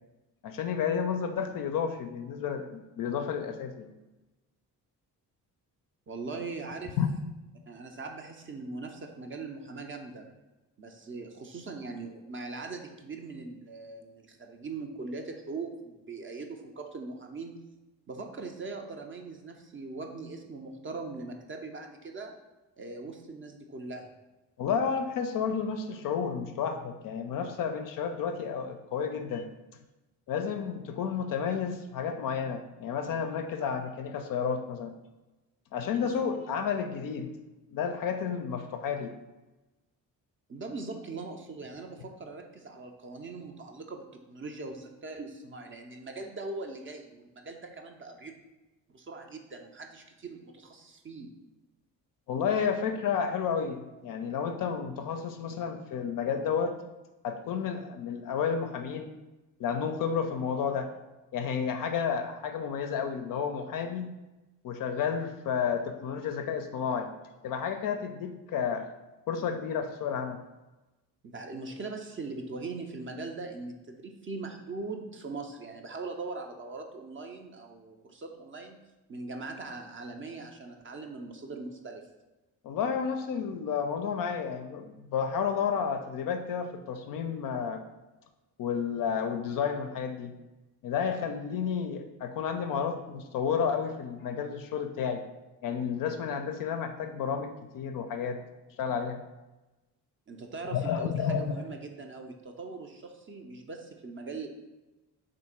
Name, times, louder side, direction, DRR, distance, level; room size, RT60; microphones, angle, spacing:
voice 1, 0.4-3.9 7.0-7.1 24.6-29.5 30.3-34.9 35.7-37.3 37.7-39.1 52.3-56.8 57.2-59.1 59.6-60.9 61.3-64.1 64.6-67.1 67.4-68.8 69.3-70.4 82.6-87.8 88.6-90.4 90.8-95.2 95.6-98.4 98.8-99.2 100.7-101.5, left 7 dB, 45° left, 6 dB, 0.4 m, -31 dB
voice 2, 6.1-7.0 7.7-10.3 10.8-17.6 18.1-22.3 22.8-24.1 40.5-48.4 48.9-51.3 71.2-78.8 79.1-82.1 100.3-104.5, right 3 dB, 25° right, 4 dB, 0.5 m, -41 dB
3.5 x 2.6 x 4.1 m, 1.1 s
hypercardioid pair, 40°, 47 cm